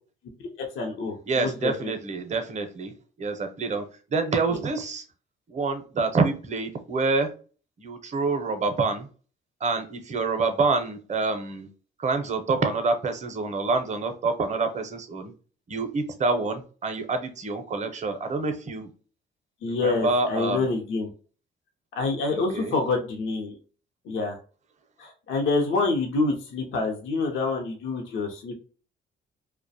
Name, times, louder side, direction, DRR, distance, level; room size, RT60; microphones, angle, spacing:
voice 1, 0.4-1.9 4.5-4.7 19.6-21.1 22.0-23.6 24.0-24.4 25.0-28.5, left 3 dB, 80° left, 2 dB, 0.6 m, -27 dB
voice 2, 1.3-2.9 3.2-5.0 5.5-7.3 7.8-9.1 9.6-11.7 12.0-15.3 15.7-18.9 19.7-20.6 22.3-22.7, right 3 dB, 35° right, 7 dB, 0.6 m, -27 dB
2.4 x 2.1 x 2.6 m, 0.38 s
cardioid pair, 90°, 20 cm